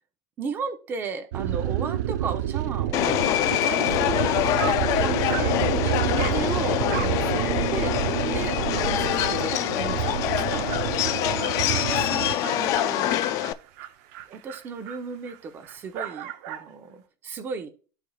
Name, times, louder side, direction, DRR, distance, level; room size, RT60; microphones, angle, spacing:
voice 1, 0.4-5.6 5.8-7.9 8.2-10.7 11.6-13.2 14.3-17.7, right 5 dB, 20° right, 7 dB, 0.8 m, -35 dB
sound 1, 1.3-12.3, right 12 dB, 85° right, 0.5 m, -28 dB
Subway metro underground, 2.9-13.5, left 12 dB, 35° left, 0.4 m, -25 dB
Dog, 4.2-4.3 4.6-4.9 5.3-5.6 6.1-6.4 6.9-7.2 7.6-7.7 8.1-8.2 8.5-8.6 8.9-16.7, right 10 dB, 50° right, 0.7 m, -39 dB
13.0 x 4.5 x 2.4 m, 0.38 s
supercardioid pair, 165°, 9 cm